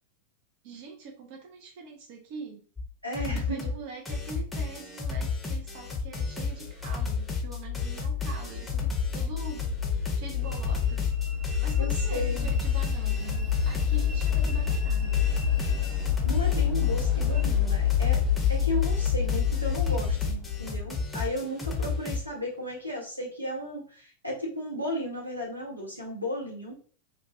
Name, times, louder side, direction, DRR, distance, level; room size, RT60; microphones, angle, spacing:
voice 1, 0.6-2.7 3.2-11.1 11.6-15.3, right 4 dB, 45° right, 1 dB, 0.4 m, -44 dB
sound 1, 2.8-2.9 3.1-3.8 4.1-22.2, left 4 dB, 5° left, 0.7 m, -32 dB
voice 2, 3.0-3.7 11.8-12.5 16.2-18.2 18.5-26.7, left 1 dB, 90° right, -3 dB, 0.9 m, -34 dB
sound 2, 5.6-20.9, left 9 dB, 45° left, 0.4 m, -28 dB
Train, 10.4-22.9, right 1 dB, 30° right, 0.9 m, -47 dB
2.2 x 2.1 x 2.7 m, 0.42 s
figure-of-eight pair, 90°, 0 cm